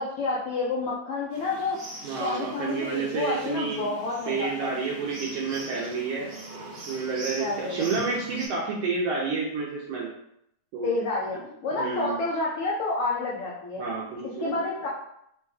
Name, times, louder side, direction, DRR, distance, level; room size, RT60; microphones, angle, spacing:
voice 1, 0.0-1.8 2.2-4.7 7.4-7.8 10.8-13.9 14.2-14.9, left 3 dB, 85° left, -4 dB, 1.2 m, -29 dB
sound 1, 1.3-8.5, right 2 dB, 60° right, 1.0 m, -42 dB
voice 2, 2.0-3.9 4.3-6.3 6.9-10.1 10.7-10.9 11.3-11.4 11.7-12.2 13.8-14.6, right 4 dB, 75° right, -5 dB, 1.5 m, -30 dB
5.4 x 2.2 x 3.3 m, 0.75 s
omnidirectional pair, 3.5 m